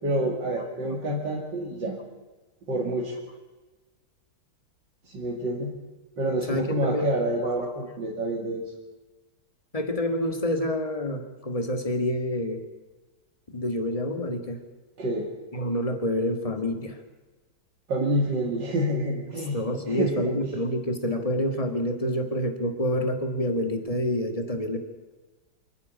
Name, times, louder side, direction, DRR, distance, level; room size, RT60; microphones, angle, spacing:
voice 1, 0.0-2.0 2.7-3.1 5.0-5.7 6.2-8.6 15.0-15.3 17.9-20.3, right 1 dB, 80° right, -2 dB, 3.2 m, -28 dB
voice 2, 6.5-7.1 9.7-12.6 13.5-14.6 15.5-16.9 19.5-24.8, left 1 dB, 20° left, 5 dB, 2.1 m, -27 dB
26.0 x 11.0 x 9.6 m, 1.2 s
omnidirectional pair, 1.9 m